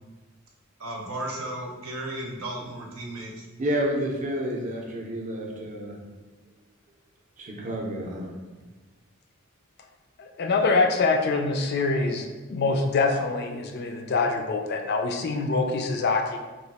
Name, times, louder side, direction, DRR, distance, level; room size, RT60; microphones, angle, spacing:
voice 1, 0.8-3.5, right 1 dB, 80° right, -1 dB, 0.7 m, -34 dB
voice 2, 3.6-6.0 7.4-8.3, equal, 35° right, -1 dB, 0.5 m, -29 dB
voice 3, 10.2-16.4, left 3 dB, 50° left, 4 dB, 0.4 m, -25 dB
3.0 x 2.4 x 4.1 m, 1.3 s
head